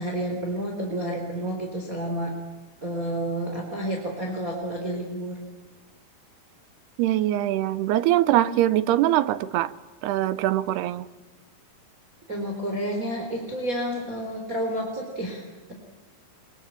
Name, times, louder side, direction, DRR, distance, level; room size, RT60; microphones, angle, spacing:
voice 1, 0.0-2.3 2.8-5.4 12.3-15.4, right 1 dB, 20° right, 4.1 m, -30 dB
voice 2, 7.0-9.7 10.0-11.1, right 13 dB, 90° right, 3.0 m, -22 dB
24.0 x 23.0 x 8.8 m
omnidirectional pair, 4.5 m